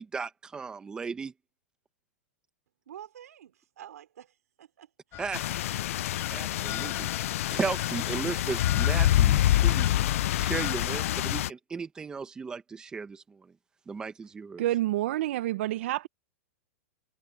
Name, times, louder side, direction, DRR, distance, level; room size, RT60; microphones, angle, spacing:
voice 1, 0.0-1.3 5.2-5.4 6.3-13.5 13.9-14.6, right 5 dB, 10° right, 1.1 m, -36 dB
voice 2, 2.8-5.6, right 10 dB, 90° right, 5.1 m, -49 dB
sound 1, 5.1-10.7, left 16 dB, 25° left, 6.2 m, -42 dB
sound 2, 5.3-11.5, left 13 dB, 60° left, 0.4 m, -26 dB
voice 3, 14.6-16.1, right 14 dB, 55° right, 0.7 m, -28 dB
supercardioid pair, 165°, 8 cm